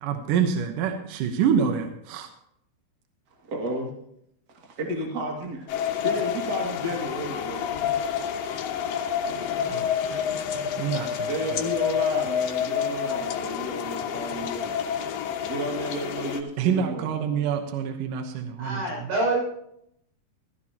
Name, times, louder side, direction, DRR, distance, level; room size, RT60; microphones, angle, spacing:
voice 1, 0.0-2.3 9.6-11.3 16.6-18.8, right 7 dB, 65° right, 6 dB, 2.3 m, -27 dB
voice 2, 3.4-3.9 4.5-7.7 9.0-9.1 11.3-14.8 15.4-17.2, right 1 dB, 30° right, 0 dB, 2.2 m, -32 dB
sound 1, 5.7-16.4, left 8 dB, 70° left, 2.3 m, -28 dB
voice 3, 18.6-19.4, right 2 dB, 85° right, -3 dB, 8.5 m, -26 dB
16.0 x 14.5 x 2.9 m, 0.74 s
omnidirectional pair, 4.7 m